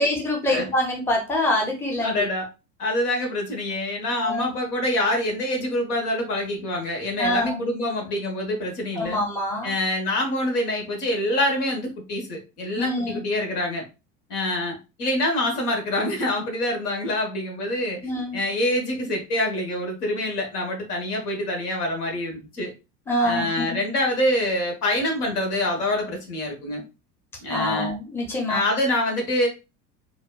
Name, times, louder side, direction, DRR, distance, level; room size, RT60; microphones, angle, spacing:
voice 1, 0.0-2.1 4.2-4.5 7.2-7.6 9.0-9.7 12.7-13.2 18.0-18.4 23.1-23.6 27.5-28.6, left 1 dB, 5° left, 0 dB, 0.7 m, -25 dB
voice 2, 2.0-2.4 2.8-9.2 9.6-13.9 14.3-22.7 23.2-26.8 27.4-27.9 28.5-29.5, left 1 dB, 65° left, 2 dB, 1.3 m, -26 dB
4.0 x 2.4 x 2.3 m, 0.28 s
figure-of-eight pair, 75°, 49 cm